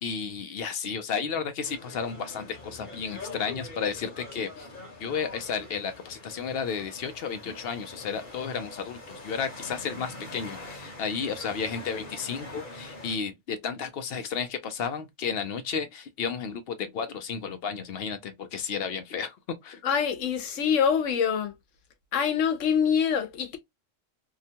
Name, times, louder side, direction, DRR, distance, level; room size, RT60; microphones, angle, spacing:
voice 1, 0.0-4.7 5.0-19.4 19.6-19.8, left 6 dB, 60° left, 0.7 m, -33 dB
sound 1, 1.6-13.2, left 2 dB, 45° left, 1.1 m, -44 dB
voice 2, 19.8-21.5 22.1-23.6, left 7 dB, 90° left, 1.0 m, -25 dB
2.8 x 2.2 x 2.7 m
omnidirectional pair, 1.3 m